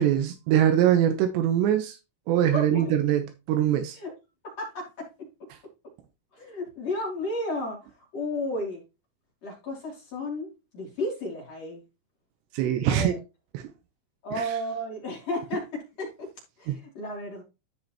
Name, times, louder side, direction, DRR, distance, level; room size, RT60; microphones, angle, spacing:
voice 1, 0.0-2.0 2.3-4.0 12.5-13.1 13.5-13.6 14.4-14.5 16.7-16.8, right 10 dB, 85° right, 2.6 m, -23 dB
voice 2, 2.5-2.9 3.9-4.1 4.4-5.3 6.3-8.8 9.4-11.8 12.8-13.2 14.2-16.3 16.6-17.4, left 1 dB, 35° left, 3.2 m, -33 dB
13.0 x 5.3 x 2.9 m
omnidirectional pair, 5.9 m